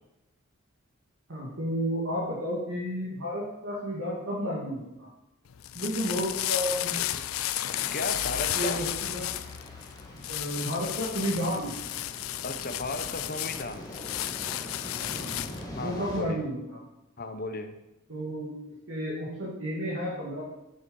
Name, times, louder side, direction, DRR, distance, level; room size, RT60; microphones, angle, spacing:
voice 1, 1.3-5.1 5.7-7.1 8.6-9.3 10.3-11.7 15.1-15.3 15.8-16.8 18.1-18.6 18.9-20.4, equal, 65° right, -7 dB, 2.3 m, -32 dB
sound 1, 5.5-15.7, left 13 dB, 80° left, 0.4 m, -33 dB
sound 2, 7.7-16.2, equal, 20° left, 1.8 m, -44 dB
voice 2, 7.9-8.8 12.4-13.9 15.7-16.4 17.2-17.7, left 2 dB, 45° left, 8 dB, 0.9 m, -35 dB
9.3 x 6.9 x 5.4 m, 0.92 s
head